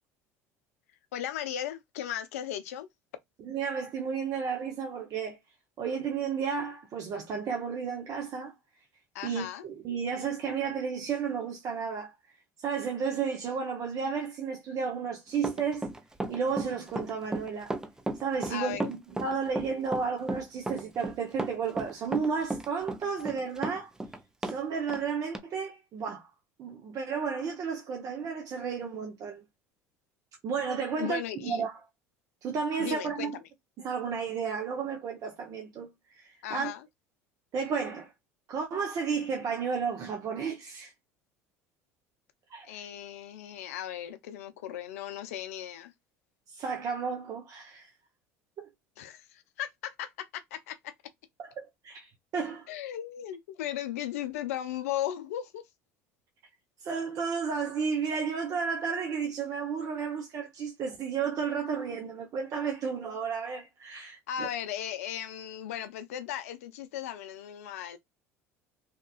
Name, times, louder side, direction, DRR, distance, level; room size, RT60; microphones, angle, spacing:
voice 1, 1.1-2.9 9.1-9.6 18.5-18.9 31.0-31.6 32.8-33.4 36.4-36.8 42.6-45.9 49.0-50.9 52.7-55.6 64.3-68.0, left 10 dB, 80° left, 0.5 m, -36 dB
voice 2, 3.4-5.4 5.8-8.5 9.2-12.1 12.6-15.9 16.3-17.8 18.2-23.9 24.4-26.3 26.6-29.4 30.4-31.8 32.4-33.4 33.8-36.7 37.5-38.1 38.5-40.9 42.5-42.8 46.5-47.9 48.6-48.7 51.4-52.7 56.8-64.5, right 6 dB, 45° right, 0.7 m, -33 dB
Run, 15.4-24.6 24.9-25.0 25.3-25.4, right 2 dB, 10° right, 0.5 m, -34 dB
2.8 x 2.3 x 2.3 m
hypercardioid pair, 75°, 8 cm